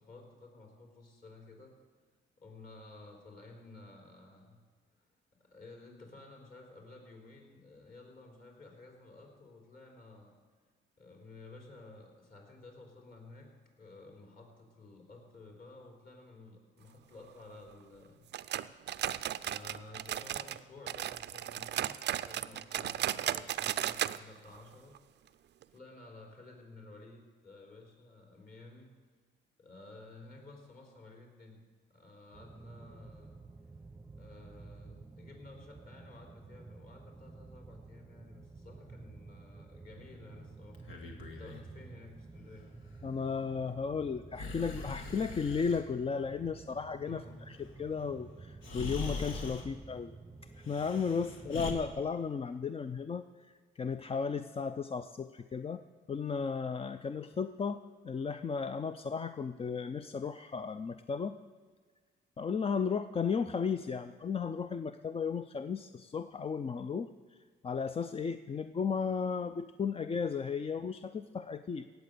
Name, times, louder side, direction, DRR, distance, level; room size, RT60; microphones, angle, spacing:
voice 1, 0.0-1.7 2.4-4.6 5.0-5.1 5.4-10.3 11.0-13.5 13.8-18.3 18.9-25.0 25.7-28.9 29.6-31.6 31.9-33.4 34.1-40.8 41.4-42.7 47.0-47.4 51.2-51.3, left 2 dB, 45° left, 1 dB, 4.0 m, -53 dB
sound 1, 18.3-20.6 20.9-24.2 24.5-24.6 24.9-25.0 25.6-25.7, right 12 dB, 60° right, 0.5 m, -35 dB
sound 2, 32.3-51.8, right 3 dB, 15° right, 0.7 m, -52 dB
Breathing, 40.7-41.7 44.3-45.8 48.0-48.1 48.6-49.7 50.6-51.7, left 2 dB, 80° left, 2.0 m, -41 dB
voice 2, 43.0-50.1 50.7-61.4 62.4-67.1 67.6-71.9, left 5 dB, 30° left, 10 dB, 0.5 m, -35 dB
17.5 x 7.9 x 6.8 m, 1.5 s
cardioid pair, 90°, 20 cm